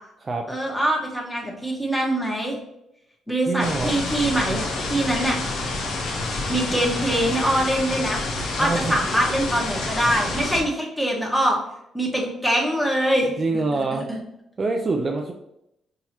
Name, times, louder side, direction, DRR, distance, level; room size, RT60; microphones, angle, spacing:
voice 1, 0.5-2.6 3.3-5.4 6.1-6.2 6.5-8.2 8.6-11.6 11.9-13.3 14.1-14.2, right 1 dB, 5° left, -2 dB, 1.2 m, -23 dB
voice 2, 3.5-4.0 8.6-9.0 13.4-14.1 14.6-15.3, right 3 dB, 35° right, 3 dB, 0.4 m, -25 dB
sound 1, 3.6-10.6, left 2 dB, 80° left, 0.9 m, -28 dB
5.7 x 2.8 x 2.9 m, 0.82 s
cardioid pair, 90°, 0 cm